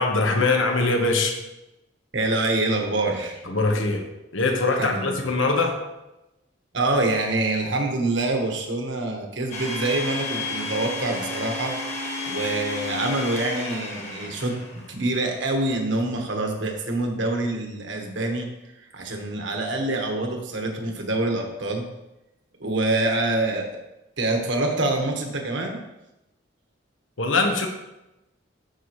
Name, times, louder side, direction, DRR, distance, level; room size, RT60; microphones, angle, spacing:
voice 1, 0.0-1.4 3.4-4.1 4.3-5.8 27.2-27.7, left 3 dB, 80° left, 3 dB, 1.2 m, -22 dB
voice 2, 2.1-3.4 4.8-5.2 6.7-11.7 12.3-18.5 18.9-21.9 22.6-23.7 24.2-25.8, right 2 dB, 65° right, 2 dB, 1.5 m, -26 dB
Domestic sounds home sounds, 9.5-15.0, left 2 dB, 35° left, 1.7 m, -32 dB
13.0 x 5.5 x 3.1 m, 0.95 s
head